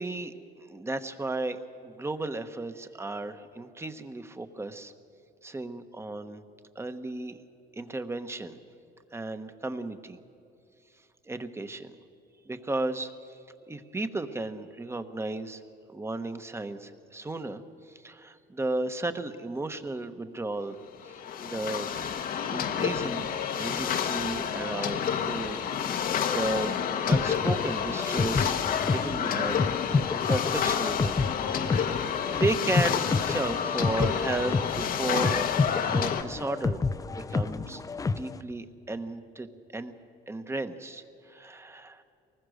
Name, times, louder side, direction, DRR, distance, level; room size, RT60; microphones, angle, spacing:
voice 1, 0.0-1.6 1.8-4.9 5.4-6.4 6.7-7.4 7.8-8.6 9.1-10.2 11.2-11.9 12.4-13.1 13.7-15.6 15.9-20.8 21.0-21.9 22.5-28.6 28.9-29.6 30.3-31.2 31.5-35.4 35.8-36.8 37.1-37.8 38.2-39.5 39.7-39.9 40.3-42.0, right 2 dB, 15° right, 10 dB, 1.1 m, -34 dB
sound 1, 21.0-36.2, left 8 dB, 55° left, 1.1 m, -29 dB
sound 2, 27.1-38.4, left 4 dB, 20° left, 0.5 m, -30 dB
24.0 x 20.0 x 6.5 m, 2.7 s
cardioid pair, 110°, 17 cm